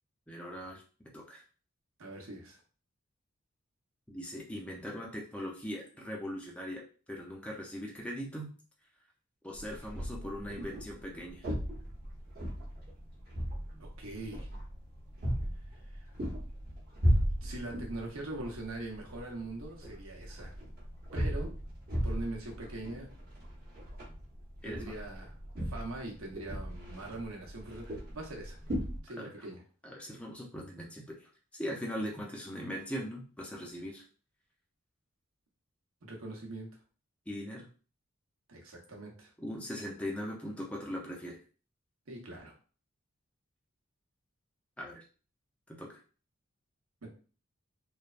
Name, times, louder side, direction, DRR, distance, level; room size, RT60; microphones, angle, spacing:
voice 1, 0.3-0.8 1.1-1.4 4.1-6.8 7.1-8.5 9.4-11.5 24.6-25.0 29.2-29.4 29.8-34.0 37.3-37.7 39.4-41.4 44.8-45.1 45.7-46.0, equal, 5° left, -2 dB, 0.4 m, -40 dB
voice 2, 2.0-2.6 13.8-14.5 17.4-20.5 21.1-21.5 22.0-23.1 24.6-25.4 25.6-28.6 29.0-29.6 36.0-36.7 38.5-39.3 42.1-42.5 47.0-47.1, right 2 dB, 90° right, 0 dB, 0.9 m, -42 dB
sound 1, 9.5-29.0, equal, 45° right, 0.9 m, -37 dB
3.2 x 2.1 x 2.4 m, 0.38 s
head